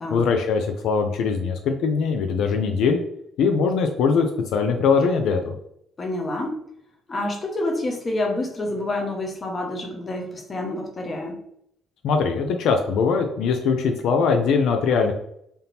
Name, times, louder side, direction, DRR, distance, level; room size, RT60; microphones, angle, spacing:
voice 1, 0.1-3.0 3.4-4.3 4.5-5.6 12.0-15.1, left 5 dB, 70° left, 4 dB, 0.4 m, -21 dB
voice 2, 6.0-6.6 7.1-11.4, left 2 dB, 25° left, 1 dB, 0.8 m, -28 dB
3.5 x 2.8 x 4.0 m, 0.73 s
cardioid pair, 165°, 0 cm